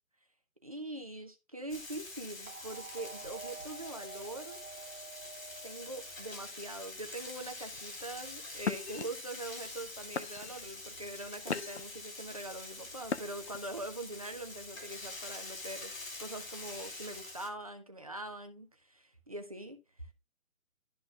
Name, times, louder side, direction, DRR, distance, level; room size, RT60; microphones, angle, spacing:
voice 1, 0.6-4.6 5.6-15.9 16.2-20.1, right 2 dB, 25° right, 0.6 m, -43 dB
Frying (food), 1.7-17.5, left 2 dB, 70° left, 2.5 m, -46 dB
sound 1, 2.5-6.7, right 6 dB, 80° right, 0.7 m, -50 dB
sound 2, 7.7-8.0 8.6-9.0 9.7-9.8 10.2-10.6 11.2-12.0 13.0-13.6, left 6 dB, 55° left, 0.7 m, -37 dB
12.5 x 4.2 x 2.4 m
hypercardioid pair, 175°, 41 cm